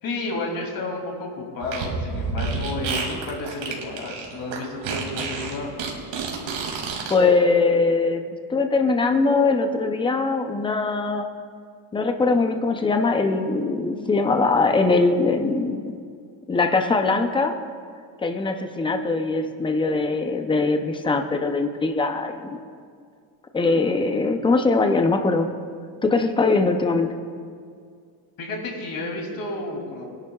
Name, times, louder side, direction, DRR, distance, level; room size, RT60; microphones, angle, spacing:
voice 1, 0.0-5.7 19.4-19.6 28.4-30.0, left 2 dB, 45° left, 0 dB, 2.9 m, -31 dB
Fart, 1.6-7.1, right 4 dB, 80° right, 2.5 m, -29 dB
voice 2, 7.1-8.2 8.5-11.3 11.9-15.8 16.5-17.6 18.2-22.6 23.5-25.5 26.0-27.2, left 3 dB, 10° left, 6 dB, 0.6 m, -21 dB
22.5 x 11.0 x 2.4 m, 2.2 s
cardioid pair, 145°, 47 cm